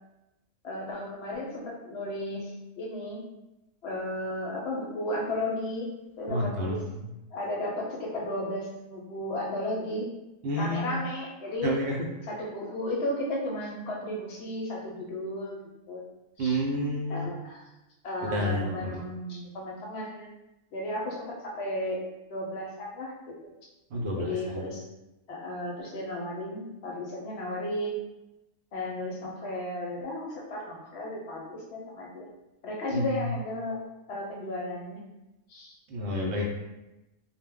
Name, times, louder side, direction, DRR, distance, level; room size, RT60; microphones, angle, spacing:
voice 1, 0.6-3.2 3.8-5.9 6.2-6.8 7.3-10.1 10.6-11.8 12.2-15.6 15.9-16.0 16.4-16.6 17.1-17.6 18.0-20.3 20.7-22.0 22.3-23.3 24.1-24.8 25.3-28.0 28.7-32.3 32.6-33.8 34.1-35.0 35.5-35.8, left 1 dB, 65° left, -2 dB, 0.8 m, -34 dB
voice 2, 6.3-6.8 10.4-11.0 11.6-11.9 16.4-17.3 18.3-18.8 23.9-24.3 32.9-33.1 35.9-36.4, equal, 65° right, -2 dB, 0.8 m, -29 dB
2.1 x 2.1 x 3.5 m, 0.96 s
omnidirectional pair, 1.3 m